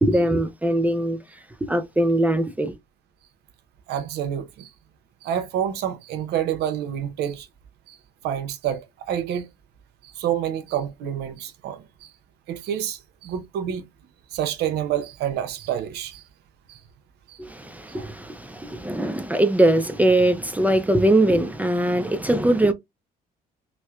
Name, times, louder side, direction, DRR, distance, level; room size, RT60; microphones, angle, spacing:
voice 1, 0.0-2.8 17.4-22.7, right 1 dB, 10° right, 0.4 m, -21 dB
voice 2, 3.9-4.7 5.2-7.5 7.9-8.0 8.2-9.5 10.0-12.1 12.5-13.8 14.3-16.2 16.7-16.8 17.3-17.4 17.9-18.1, right 10 dB, 75° right, 0.7 m, -28 dB
4.2 x 2.1 x 2.3 m
cardioid pair, 110°, 17 cm